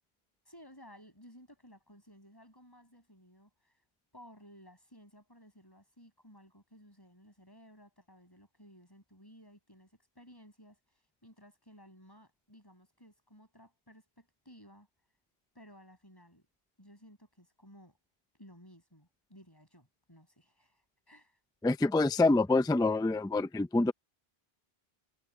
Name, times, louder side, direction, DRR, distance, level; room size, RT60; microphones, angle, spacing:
voice 1, 0.5-3.7 4.1-14.9 15.5-16.4 16.8-18.0 18.4-21.4, equal, 20° left, 7.1 m, -57 dB
voice 2, 21.6-23.9, left 2 dB, 5° left, 0.4 m, -26 dB
omnidirectional pair, 1.0 m